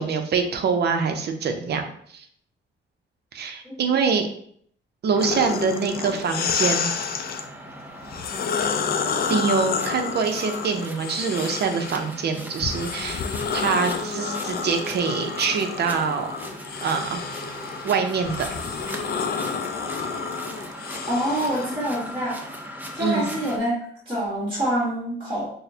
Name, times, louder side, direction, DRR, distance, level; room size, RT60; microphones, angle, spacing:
voice 1, 0.0-1.8 2.1-2.3 3.3-4.3 5.0-6.9 9.3-13.2 13.5-16.3 16.8-17.2 17.8-18.8 23.0-23.3, right 5 dB, 55° right, 6 dB, 0.6 m, -24 dB
sound 1, 5.1-23.6, equal, 10° right, 0.4 m, -39 dB
sound 2, 5.2-7.4 8.0-12.1 12.6-21.7, left 6 dB, 50° left, 0.4 m, -29 dB
voice 2, 21.1-22.4 22.9-25.5, right 1 dB, 25° right, -7 dB, 1.4 m, -26 dB
6.2 x 2.1 x 2.7 m, 0.64 s
cardioid pair, 125°, 20 cm